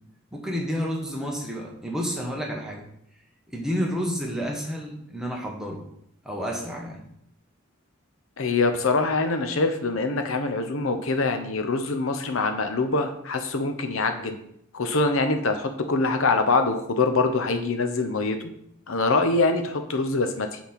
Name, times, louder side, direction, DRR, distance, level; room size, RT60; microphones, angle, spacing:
voice 1, 0.3-2.8 3.5-5.8 6.2-7.0, equal, 5° right, -1 dB, 1.2 m, -30 dB
voice 2, 8.4-14.4 14.7-18.4 18.9-20.6, left 3 dB, 75° left, 7 dB, 0.8 m, -24 dB
5.7 x 4.2 x 5.9 m, 0.70 s
head